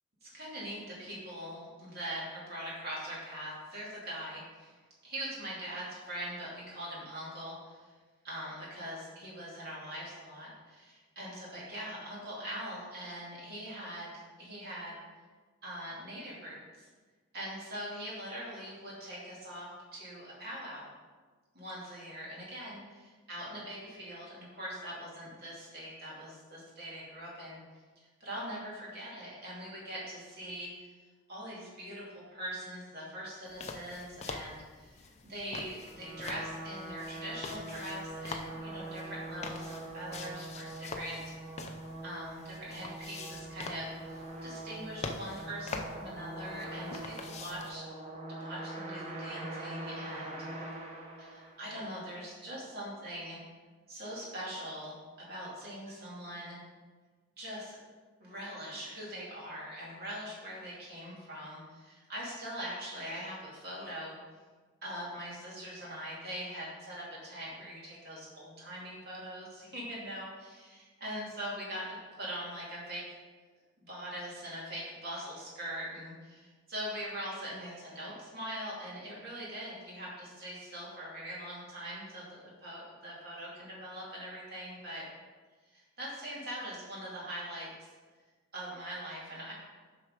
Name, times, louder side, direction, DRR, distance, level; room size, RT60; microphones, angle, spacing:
voice 1, 0.2-4.7 5.0-7.9 8.2-14.1 14.4-14.9 15.6-16.9 17.3-20.9 21.5-27.6 28.0-30.9 31.3-41.2 42.0-47.9 48.3-50.4 51.2-53.4 53.9-56.6 57.4-57.8 58.2-64.1 64.8-73.0 73.8-85.0 85.7-87.7 88.5-89.5, equal, 45° right, -5 dB, 2.7 m, -42 dB
sound 1, 33.5-47.8, left 3 dB, 30° left, 0.5 m, -45 dB
sound 2, 35.6-51.9, right 1 dB, 30° right, 1.1 m, -43 dB
7.1 x 5.9 x 5.1 m, 1.4 s
head